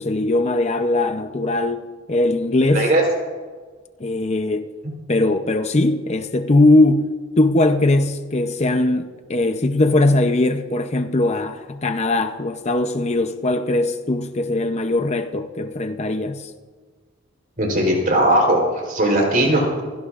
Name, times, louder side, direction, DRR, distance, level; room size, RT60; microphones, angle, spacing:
voice 1, 0.0-1.8 2.1-2.9 4.0-4.7 5.1-7.1 7.4-16.5, left 2 dB, 30° left, 0.7 m, -20 dB
voice 2, 17.6-18.6 18.9-19.8, right 1 dB, 40° right, 3.8 m, -18 dB
27.5 x 17.0 x 2.5 m
head